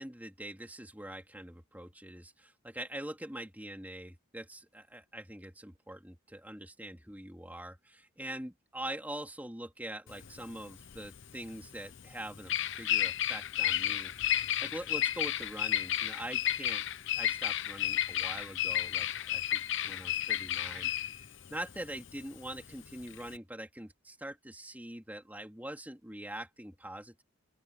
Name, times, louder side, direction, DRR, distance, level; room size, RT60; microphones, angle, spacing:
voice 1, 0.0-16.8 17.2-20.9 21.5-27.2, right 1 dB, 10° right, 3.4 m, -44 dB
Bird vocalization bird call bird song, 10.1-23.4, left 11 dB, 60° left, 0.9 m, -32 dB
open air
head